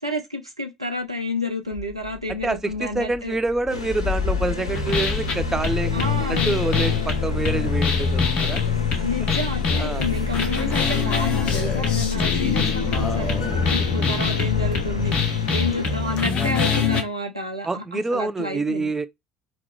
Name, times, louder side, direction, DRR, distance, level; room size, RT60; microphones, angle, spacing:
voice 1, 0.0-3.4 5.9-6.6 9.0-13.3 13.7-15.1 15.5-18.9, left 2 dB, 90° right, 0.6 m, -29 dB
Engine starting, 1.7-15.8, left 8 dB, 20° left, 1.5 m, -31 dB
voice 2, 2.3-8.6 9.8-10.1 17.6-19.1, right 3 dB, 15° right, 0.3 m, -27 dB
sound 1, 3.7-16.2, left 2 dB, 85° left, 0.4 m, -32 dB
sound 2, 4.7-17.0, left 5 dB, 40° left, 0.7 m, -24 dB
2.9 x 2.3 x 3.6 m
figure-of-eight pair, 60°, 3 cm